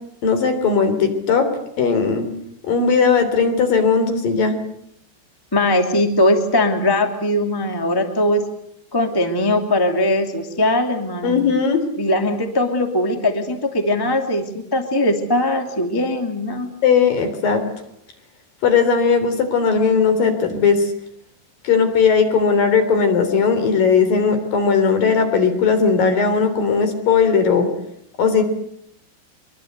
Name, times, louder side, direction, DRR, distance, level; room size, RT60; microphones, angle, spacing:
voice 1, 0.2-1.5 1.8-2.3 2.7-4.6 11.2-11.8 16.8-17.6 18.6-20.9 21.6-27.7 28.2-28.4, left 5 dB, 55° left, 8 dB, 5.0 m, -17 dB
voice 2, 5.5-8.4 8.9-11.5 12.0-16.7, left 1 dB, 10° left, 5 dB, 1.4 m, -20 dB
24.0 x 23.5 x 8.1 m, 0.72 s
omnidirectional pair, 5.0 m